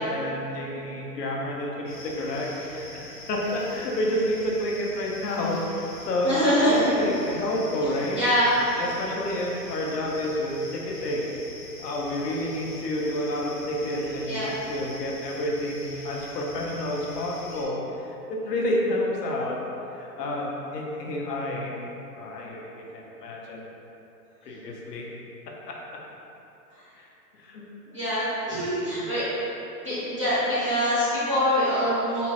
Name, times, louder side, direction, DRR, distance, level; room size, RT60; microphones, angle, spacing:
voice 1, 0.0-8.2 8.8-11.3 11.8-19.6 19.9-21.8 22.2-23.6 24.4-25.1 27.0-27.1 27.3-27.6 29.0-29.1, left 1 dB, 75° left, -2 dB, 0.7 m, -29 dB
sound 1, 1.9-17.6, left 2 dB, 30° left, 0.5 m, -44 dB
voice 2, 6.2-6.9 8.2-8.7 14.3-14.5 27.9-29.2 29.8-32.3, equal, 20° right, -14 dB, 0.4 m, -24 dB
3.6 x 2.0 x 2.8 m, 3.0 s
hypercardioid pair, 150°, 49 cm